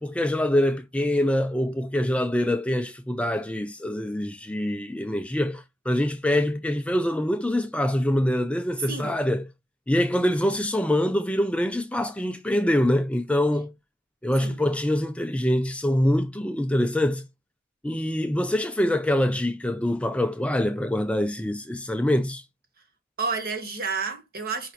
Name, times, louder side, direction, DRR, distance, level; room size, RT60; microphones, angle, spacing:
voice 1, 0.0-9.5 9.9-13.7 14.2-17.3 17.8-22.4, left 1 dB, 5° left, 0.4 m, -24 dB
voice 2, 23.2-24.7, right 4 dB, 45° right, 1.6 m, -30 dB
5.0 x 4.2 x 4.4 m
head